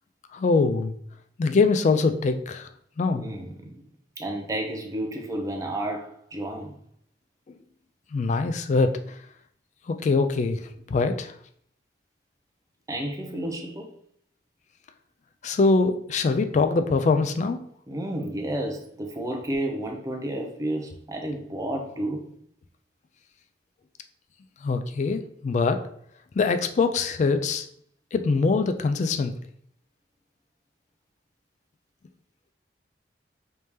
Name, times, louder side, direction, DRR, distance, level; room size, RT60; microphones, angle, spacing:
voice 1, 0.3-0.9 1.4-2.7 3.0-3.3 8.1-8.9 9.9-10.6 10.9-11.3 15.4-17.6 24.6-25.8 26.4-27.7 28.1-29.3, left 4 dB, 40° left, 8 dB, 0.3 m, -23 dB
voice 2, 3.1-3.8 4.2-6.8 11.0-11.1 12.9-13.9 17.9-22.3, right 1 dB, 20° right, 3 dB, 0.5 m, -31 dB
3.4 x 2.8 x 3.2 m, 0.64 s
head